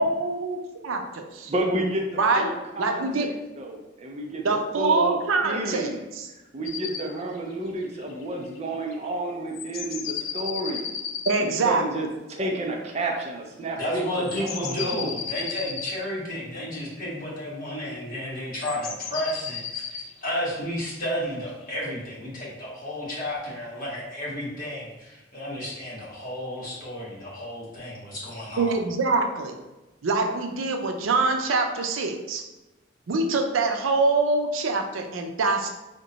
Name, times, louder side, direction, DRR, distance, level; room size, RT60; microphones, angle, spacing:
voice 1, 0.0-1.5 2.2-3.3 4.4-6.3 11.3-11.8 28.6-29.5 30.0-32.4 33.1-35.7, right 3 dB, 90° right, 4 dB, 0.5 m, -24 dB
voice 2, 1.5-5.2 5.4-6.0 6.5-10.9 11.4-14.0 14.3-15.2, right 1 dB, 35° right, 1 dB, 0.4 m, -31 dB
sound 1, 6.7-7.1 7.3-7.4 7.7-7.8 8.0-9.1 9.5-11.4 14.0-16.0 18.6-21.6, left 7 dB, 90° left, 0.4 m, -34 dB
voice 3, 13.8-28.7, left 1 dB, 45° left, -7 dB, 1.4 m, -32 dB
3.6 x 2.2 x 3.9 m, 1.0 s
head